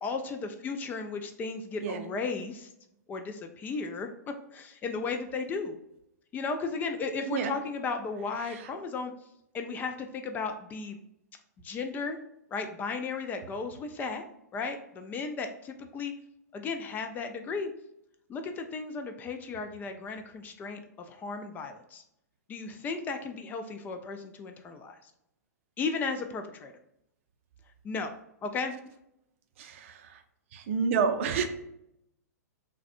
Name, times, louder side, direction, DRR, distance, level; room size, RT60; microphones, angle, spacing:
voice 1, 0.0-2.7 3.1-5.8 6.3-9.1 9.5-11.0 11.6-12.2 12.5-14.2 14.5-16.1 16.5-17.7 18.3-22.0 22.5-25.0 25.8-26.7 27.8-28.1 28.4-28.8, left 4 dB, 20° left, 6 dB, 0.4 m, -35 dB
voice 2, 7.3-7.6 8.4-8.7 29.6-30.2 30.5-31.5, right 6 dB, 50° right, 7 dB, 0.5 m, -30 dB
5.7 x 2.2 x 2.5 m, 0.80 s
figure-of-eight pair, 105°, 9 cm